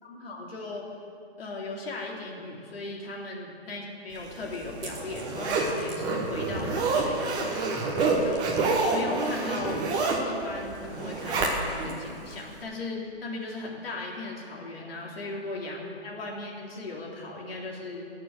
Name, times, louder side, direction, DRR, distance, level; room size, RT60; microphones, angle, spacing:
voice 1, 0.0-0.8 1.4-8.4 8.9-9.8 10.3-18.0, left 2 dB, 60° left, -2 dB, 3.2 m, -37 dB
Zipper (clothing), 4.3-11.9 12.3-12.4, right 3 dB, 10° right, 1.1 m, -28 dB
17.5 x 6.8 x 7.9 m, 2.5 s
hypercardioid pair, 155°, 33 cm